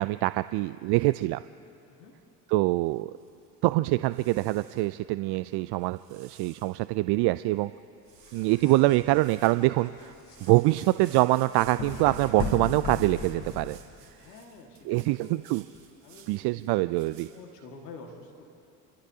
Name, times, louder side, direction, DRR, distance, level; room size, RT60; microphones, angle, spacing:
voice 1, 0.0-1.4 2.5-3.1 3.6-7.7 8.3-10.1 10.4-13.8 14.9-15.6 16.3-17.3, right 19 dB, 55° right, 14 dB, 0.5 m, -25 dB
sound 1, 2.9-3.6 4.1-4.9 5.5-6.8 7.3-7.4 7.5-7.8 8.0-8.7 9.0-17.4, right 8 dB, 75° right, 3.0 m, -55 dB
sound 2, 8.1-14.0, left 4 dB, 70° left, 4.2 m, -38 dB
voice 2, 14.2-15.5 16.0-18.4, left 3 dB, 85° left, 2 dB, 2.0 m, -48 dB
29.5 x 15.0 x 2.8 m, 2.7 s
hypercardioid pair, 60°, 47 cm